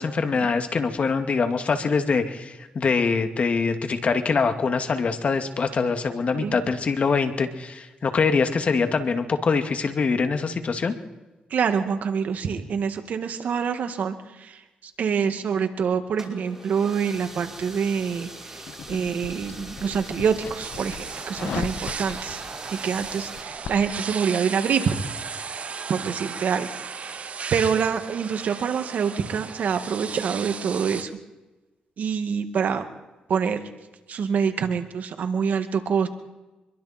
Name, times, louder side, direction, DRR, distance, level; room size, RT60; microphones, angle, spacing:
voice 1, 0.0-10.9, left 4 dB, 50° left, 7 dB, 2.3 m, -24 dB
voice 2, 11.5-14.6 15.0-22.4 22.8-24.9 25.9-31.1 32.0-32.9 33.3-33.6 34.1-36.1, right 6 dB, 65° right, 7 dB, 2.1 m, -26 dB
sound 1, 16.1-23.4, right 1 dB, 15° right, 5.2 m, -42 dB
sound 2, 18.6-23.9, left 7 dB, 70° left, 1.3 m, -37 dB
sound 3, 20.6-31.0, right 5 dB, 50° right, 1.2 m, -36 dB
25.5 x 22.5 x 4.5 m, 1.1 s
cardioid pair, 80°, 3 cm